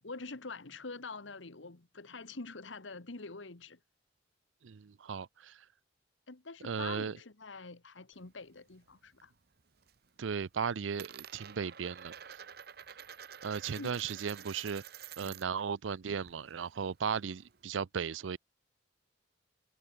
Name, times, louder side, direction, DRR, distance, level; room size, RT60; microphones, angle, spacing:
voice 1, 0.0-3.8 6.3-9.3 13.7-14.0 15.2-15.4, left 3 dB, 85° left, 1.6 m, -45 dB
voice 2, 4.6-5.6 6.6-7.2 10.2-12.4 13.4-14.8 15.2-18.4, right 6 dB, 90° right, 0.5 m, -36 dB
Coin (dropping), 8.1-9.3 9.6-10.1 10.4-15.7 15.9-17.6, right 8 dB, 55° right, 1.2 m, -50 dB
head